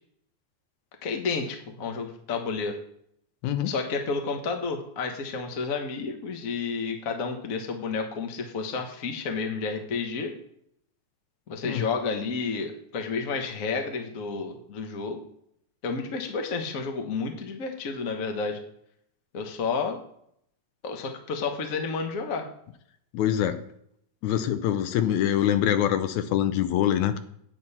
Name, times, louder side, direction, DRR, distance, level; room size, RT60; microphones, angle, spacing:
voice 1, 1.0-2.8 3.6-10.3 11.5-15.2 15.8-18.6 19.3-20.0 20.8-22.5, left 4 dB, 60° left, 4 dB, 0.8 m, -31 dB
voice 2, 3.4-3.7 11.6-11.9 23.1-23.6 24.2-27.2, left 10 dB, 75° left, 10 dB, 2.0 m, -24 dB
8.8 x 8.5 x 4.2 m, 0.69 s
omnidirectional pair, 3.5 m